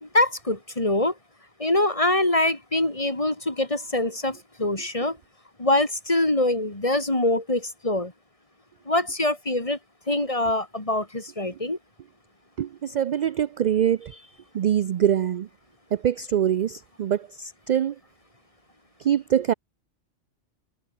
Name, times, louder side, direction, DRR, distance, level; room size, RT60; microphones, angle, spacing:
voice 1, 0.0-1.1 1.6-5.2 5.6-8.1 8.9-9.8 10.1-11.8, left 1 dB, 25° left, 3.1 m, -24 dB
voice 2, 12.6-14.1 14.5-15.5 15.9-17.9 19.0-19.5, right 9 dB, 60° right, 0.4 m, -24 dB
omnidirectional pair, 1.2 m